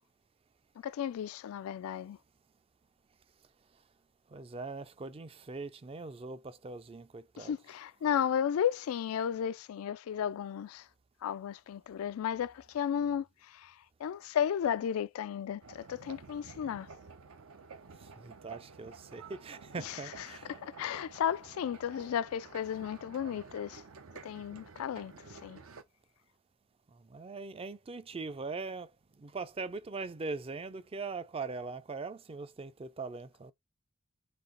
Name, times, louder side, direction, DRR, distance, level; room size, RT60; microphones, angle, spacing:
voice 1, 0.8-2.2 7.4-10.9 11.2-13.7 14.0-16.9 19.8-20.0 20.5-23.8 24.2-25.6, left 8 dB, 90° left, 0.3 m, -34 dB
voice 2, 4.3-7.6 18.0-20.6 26.9-28.9 29.2-33.5, right 3 dB, 25° right, 0.4 m, -41 dB
sound 1, 15.6-25.8, right 4 dB, 80° right, 0.7 m, -51 dB
4.2 x 2.9 x 3.8 m
head